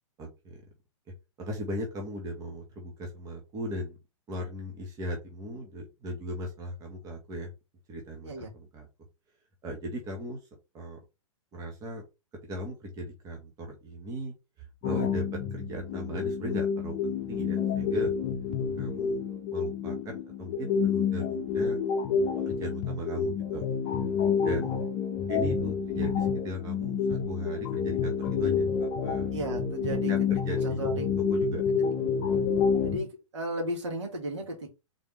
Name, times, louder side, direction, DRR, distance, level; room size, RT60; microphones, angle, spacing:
voice 1, 0.2-0.6 1.4-4.0 4.3-7.5 7.9-8.9 9.6-10.5 10.7-11.0 11.5-12.0 12.5-14.3 14.8-18.1 18.7-19.2 19.5-21.8 22.4-23.6 24.4-24.8 25.3-29.3 30.1-30.9 31.3-31.6, right 1 dB, 20° right, 1 dB, 1.0 m, -37 dB
sound 1, 14.8-33.0, left 6 dB, 35° left, 0.8 m, -28 dB
voice 2, 29.3-30.1 30.6-31.1 32.8-34.7, right 1 dB, 60° right, 1 dB, 1.8 m, -34 dB
3.9 x 3.4 x 3.1 m, 0.27 s
figure-of-eight pair, 110°, 17 cm